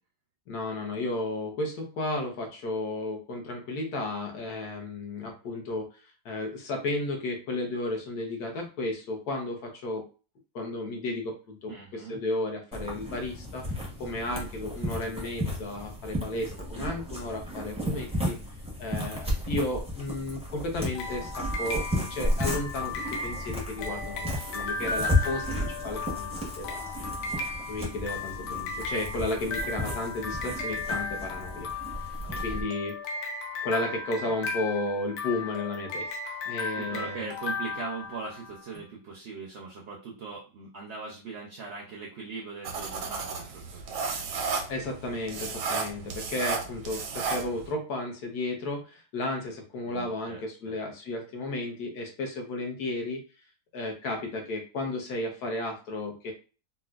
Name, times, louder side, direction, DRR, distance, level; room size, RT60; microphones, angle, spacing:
voice 1, 0.5-5.9 6.2-10.1 10.5-13.6 14.0-18.4 18.8-26.9 27.7-31.7 32.4-33.0 33.6-37.3 44.7-53.2 53.7-56.3, left 2 dB, 70° left, 2 dB, 1.3 m, -33 dB
voice 2, 11.7-12.2 32.2-32.7 36.8-44.1 49.9-50.8, right 4 dB, 65° right, -2 dB, 0.7 m, -40 dB
sound 1, 12.7-32.6, left 1 dB, 5° right, 0.6 m, -33 dB
sound 2, 20.9-38.6, left 3 dB, 90° left, 1.3 m, -35 dB
sound 3, 42.6-47.7, right 5 dB, 85° right, 1.2 m, -33 dB
4.1 x 2.2 x 2.3 m, 0.34 s
omnidirectional pair, 1.8 m